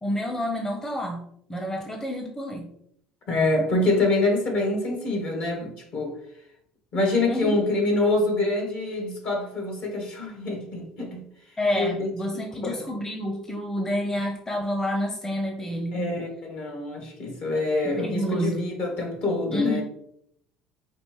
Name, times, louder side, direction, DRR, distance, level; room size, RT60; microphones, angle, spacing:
voice 1, 0.0-2.7 7.3-7.6 11.6-16.0 17.8-18.6 19.5-19.8, left 1 dB, 20° left, 0.7 m, -29 dB
voice 2, 3.3-6.1 6.9-11.2 11.7-12.1 12.6-12.7 15.9-19.8, left 2 dB, 60° left, 1.5 m, -25 dB
5.2 x 2.5 x 3.1 m
supercardioid pair, 75°, 3 cm